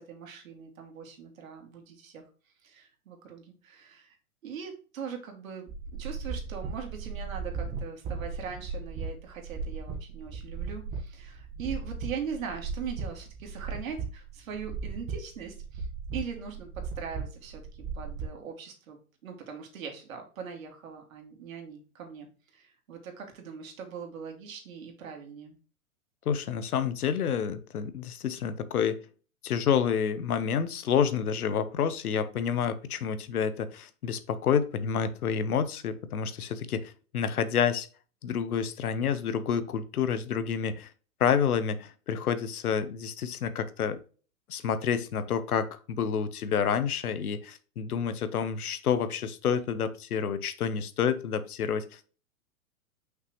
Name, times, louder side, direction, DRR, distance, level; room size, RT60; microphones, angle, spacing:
voice 1, 0.0-2.2 2.6-4.2 4.4-5.7 6.0-15.9 16.1-17.6 17.9-25.6, right 6 dB, 65° right, 3 dB, 2.6 m, -41 dB
sound 1, 5.7-18.3, right 5 dB, 20° right, 1.5 m, -37 dB
voice 2, 26.2-29.0 29.4-37.9 38.2-40.9 41.2-44.0 44.5-52.1, left 7 dB, 85° left, 13 dB, 1.1 m, -29 dB
5.8 x 5.7 x 3.2 m, 0.36 s
hypercardioid pair, 145°, 43 cm